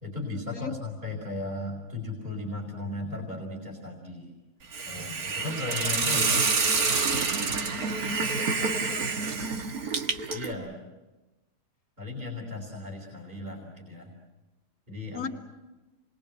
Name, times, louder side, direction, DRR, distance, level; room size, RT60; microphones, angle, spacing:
voice 1, 0.0-4.3 4.8-6.4 10.3-10.8 12.0-14.1 14.9-15.3, left 2 dB, 25° right, 0 dB, 4.4 m, -36 dB
Hiss, 4.7-10.5, right 4 dB, 65° right, 2.0 m, -27 dB
voice 2, 7.8-9.2 15.1-15.3, left 5 dB, 60° left, 3 dB, 2.5 m, -39 dB
29.0 x 22.0 x 7.8 m, 1.1 s
omnidirectional pair, 1.7 m